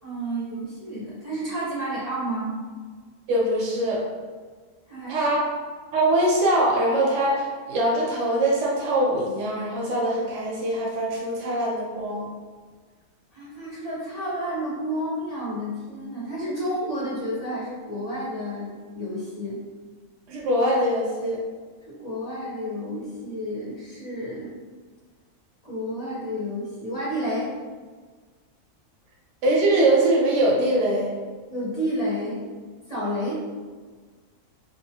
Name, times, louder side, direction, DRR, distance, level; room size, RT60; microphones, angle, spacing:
voice 1, 0.0-2.5 4.9-5.3 13.3-18.7 18.9-19.6 21.8-24.5 25.6-27.5 31.5-32.5 32.9-33.4, equal, 40° left, -10 dB, 0.6 m, -30 dB
voice 2, 3.3-4.0 5.1-5.4 5.9-12.3 20.3-21.4 29.4-31.1, right 1 dB, 70° right, -3 dB, 0.9 m, -22 dB
2.4 x 2.3 x 2.7 m, 1.5 s
omnidirectional pair, 1.4 m